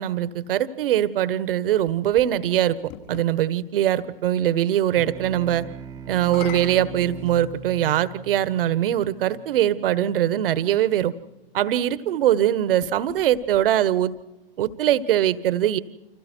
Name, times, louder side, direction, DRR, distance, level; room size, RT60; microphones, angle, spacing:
voice 1, 0.0-2.8 3.1-5.7 6.1-11.1 11.5-14.1 14.6-15.8, right 12 dB, 65° right, 15 dB, 1.4 m, -22 dB
sound 1, 1.5-3.3 6.1-7.9 8.8-8.9 12.6-14.2, left 11 dB, 45° left, 5.7 m, -43 dB
sound 2, 4.9-9.8, right 6 dB, 10° right, 1.3 m, -41 dB
30.0 x 26.5 x 4.6 m, 0.96 s
hypercardioid pair, 115°, 30 cm